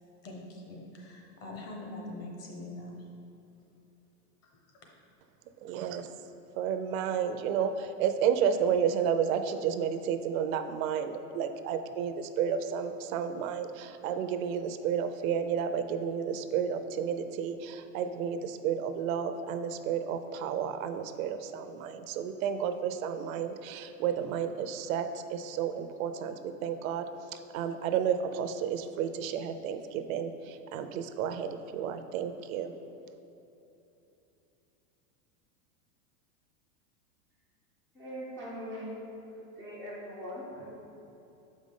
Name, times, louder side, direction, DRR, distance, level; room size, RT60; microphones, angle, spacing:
voice 1, 0.2-3.0, left 2 dB, 35° left, 0 dB, 1.1 m, -43 dB
voice 2, 5.6-6.1 6.5-32.7, right 8 dB, 70° right, 9 dB, 0.5 m, -31 dB
voice 3, 37.9-39.1 39.3-40.9, equal, 5° left, -9 dB, 0.3 m, -41 dB
6.9 x 5.2 x 3.6 m, 2.9 s
supercardioid pair, 135°, 44 cm